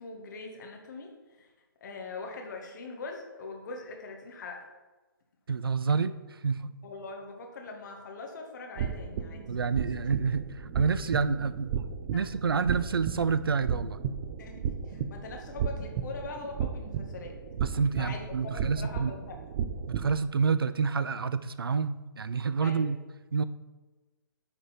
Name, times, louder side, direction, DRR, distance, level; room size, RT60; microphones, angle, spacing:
voice 1, 0.0-1.5 1.8-4.7 6.0-6.1 6.8-9.9 12.1-12.2 14.4-17.4 18.0-19.4 22.6-22.9, left 3 dB, 55° left, 2 dB, 1.9 m, -42 dB
voice 2, 5.5-6.1 6.4-6.7 9.5-11.7 12.1-14.0 17.6-19.1 19.9-23.0 23.3-23.4, right 5 dB, 80° right, 14 dB, 0.5 m, -28 dB
sound 1, 8.8-20.2, right 7 dB, 40° right, 0.7 m, -34 dB
9.4 x 5.2 x 4.5 m, 1.2 s
figure-of-eight pair, 130°, 12 cm